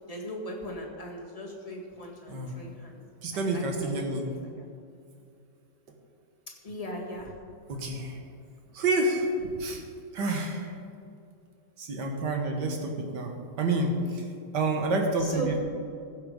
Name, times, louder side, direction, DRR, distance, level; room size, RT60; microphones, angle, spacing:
voice 1, 0.1-3.0 3.3-4.6 6.6-7.3 15.2-15.6, equal, 20° left, -2 dB, 1.7 m, -39 dB
voice 2, 3.2-4.3 7.7-8.2 8.7-9.8 10.1-10.7 11.8-14.3 14.5-15.6, right 2 dB, 70° right, 3 dB, 1.8 m, -29 dB
15.0 x 6.7 x 5.2 m, 2.4 s
omnidirectional pair, 2.0 m